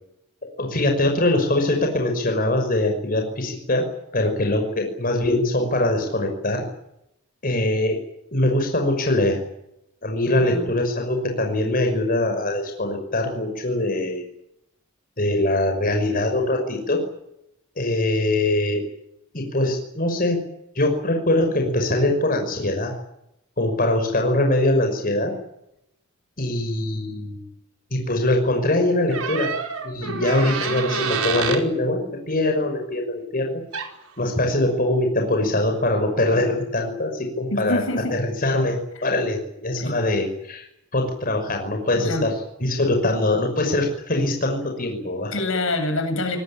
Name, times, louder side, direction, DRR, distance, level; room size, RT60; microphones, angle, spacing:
voice 1, 0.6-3.9 4.1-6.6 7.4-8.0 8.3-9.4 10.0-14.2 15.2-17.1 17.8-18.9 19.3-20.4 20.7-22.9 23.6-25.3 26.4-27.5 27.9-29.5 29.8-33.6 34.2-37.8 38.1-40.7 40.9-45.3, left 1 dB, 40° left, 3 dB, 6.0 m, -22 dB
voice 2, 10.3-10.7 30.0-30.2 37.5-38.1 38.9-39.1 39.8-40.0 41.9-42.3 45.3-46.4, left 2 dB, 65° left, 7 dB, 7.9 m, -26 dB
sound 1, 29.1-31.6 33.7-33.9, right 5 dB, 80° right, 4.8 m, -27 dB
26.0 x 20.0 x 8.9 m, 0.79 s
head